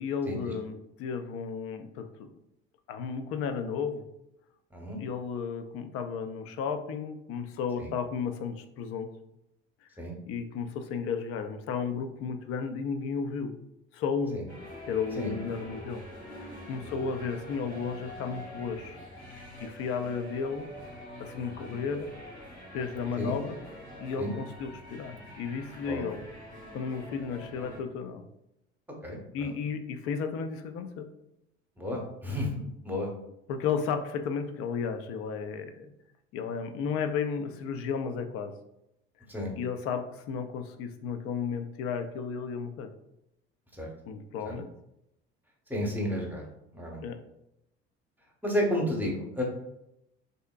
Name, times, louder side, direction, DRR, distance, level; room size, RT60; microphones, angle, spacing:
voice 1, 0.0-2.3 2.9-4.0 5.0-9.1 10.3-13.5 13.9-14.4 14.9-19.0 19.6-20.7 21.2-22.1 22.7-23.6 24.0-26.2 26.7-28.2 29.3-31.1 33.5-35.9 36.3-38.5 39.6-42.9 44.1-44.7 47.0-47.2, left 6 dB, 45° left, 8 dB, 0.4 m, -33 dB
sound 1, 14.5-27.8, equal, 85° left, 0.9 m, -45 dB
voice 2, 29.0-29.5 31.8-32.6 32.8-33.1 39.3-39.5 43.7-43.9 44.4-44.6 45.7-46.4 46.7-47.0 48.4-49.4, left 1 dB, 5° right, 0 dB, 0.9 m, -32 dB
3.4 x 2.6 x 2.3 m, 0.82 s
figure-of-eight pair, 60°, 33 cm